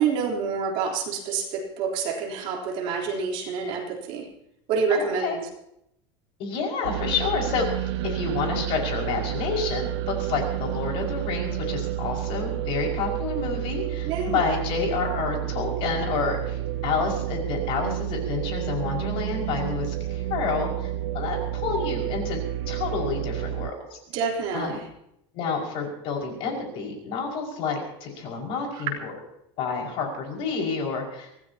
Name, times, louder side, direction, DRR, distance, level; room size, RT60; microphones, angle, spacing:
voice 1, 0.0-4.3 4.7-5.5 14.0-14.5 24.1-24.8 28.7-28.8, right 5 dB, 40° right, -1 dB, 3.7 m, -27 dB
voice 2, 4.9-5.4 6.4-22.4 22.7-24.0 24.5-24.8 25.3-29.1 29.6-31.3, left 5 dB, 40° left, 0 dB, 5.6 m, -29 dB
sound 1, 6.8-23.7, right 12 dB, 70° right, 0.7 m, -30 dB
25.5 x 18.0 x 2.9 m, 0.78 s
supercardioid pair, 175°, 14 cm